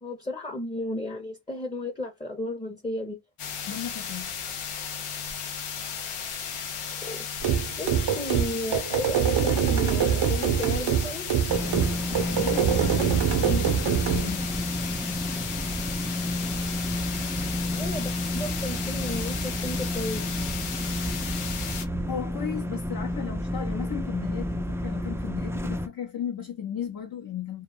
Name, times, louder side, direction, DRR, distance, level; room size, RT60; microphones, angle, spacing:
voice 1, 0.0-3.2 7.0-7.3 7.7-11.3 17.7-20.2 23.7-23.9, left 1 dB, 15° left, 0.8 m, -34 dB
sound 1, 3.4-21.8, left 7 dB, 90° left, 0.7 m, -35 dB
voice 2, 3.6-4.4 12.1-13.2 13.4-14.6 22.1-27.6, left 9 dB, 45° left, 0.7 m, -35 dB
sound 2, 7.4-14.3, right 8 dB, 65° right, 0.6 m, -24 dB
sound 3, 11.5-25.9, left 1 dB, 5° right, 0.3 m, -31 dB
2.3 x 2.1 x 3.1 m
cardioid pair, 40°, 49 cm